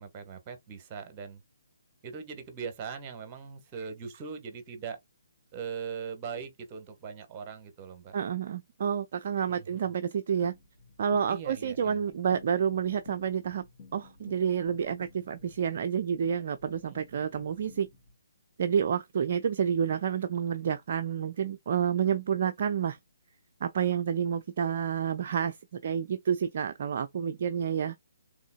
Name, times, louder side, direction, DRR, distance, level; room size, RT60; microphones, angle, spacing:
voice 1, 0.0-1.4 2.0-5.0 5.5-8.2 9.5-9.9 11.3-12.0 16.9-17.3, right 6 dB, 25° right, 1.3 m, -41 dB
voice 2, 8.1-10.5 11.0-13.6 13.9-17.9 18.6-23.0 23.6-25.6 25.8-27.9, right 7 dB, 45° right, 0.4 m, -29 dB
sound 1, 10.4-18.1, left 4 dB, 35° left, 2.8 m, -54 dB
6.0 x 3.6 x 2.3 m
figure-of-eight pair, 135°, 0 cm